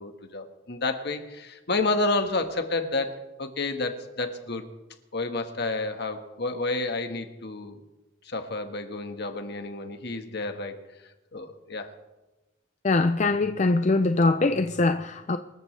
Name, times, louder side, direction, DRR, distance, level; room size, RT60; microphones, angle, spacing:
voice 1, 0.0-4.7 5.1-7.8 8.2-10.8 11.3-11.9, left 3 dB, 55° left, 1.5 m, -30 dB
voice 2, 12.8-15.4, left 3 dB, 35° left, 0.5 m, -22 dB
25.5 x 14.0 x 3.3 m
head